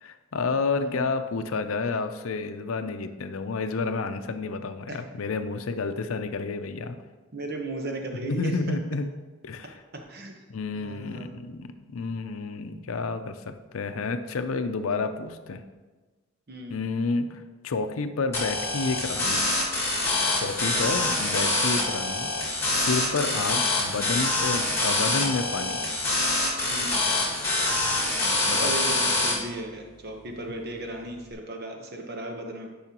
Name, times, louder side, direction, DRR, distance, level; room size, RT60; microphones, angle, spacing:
voice 1, 0.0-6.9 8.2-9.1 9.4-9.8 10.5-15.6 16.7-19.5 20.4-25.8 28.4-28.7, left 4 dB, 85° left, 9 dB, 0.5 m, -30 dB
voice 2, 7.3-8.8 9.9-10.3 10.8-11.3 16.5-16.8 20.7-21.1 23.4-23.6 26.7-27.0 28.2-32.7, right 1 dB, 50° right, 3 dB, 1.0 m, -36 dB
sound 1, 18.3-29.3, left 2 dB, 15° left, 2.0 m, -25 dB
10.5 x 5.5 x 2.9 m, 1.3 s
head